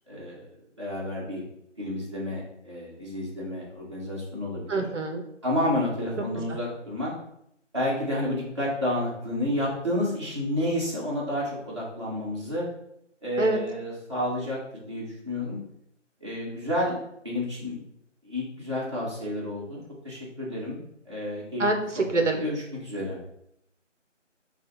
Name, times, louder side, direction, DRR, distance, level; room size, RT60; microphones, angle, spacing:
voice 1, 0.1-0.5 0.8-1.4 1.8-4.9 5.4-7.1 7.7-12.7 13.2-15.6 16.2-17.0 17.2-17.8 18.2-19.8 20.0-20.8 21.0-21.6 21.9-22.0 22.3-23.2, left 1 dB, 25° right, -7 dB, 0.8 m, -30 dB
voice 2, 4.7-5.2 13.4-13.6 21.6-22.4, right 2 dB, 70° right, 4 dB, 0.7 m, -25 dB
3.8 x 2.4 x 4.1 m, 0.75 s
figure-of-eight pair, 165°, 37 cm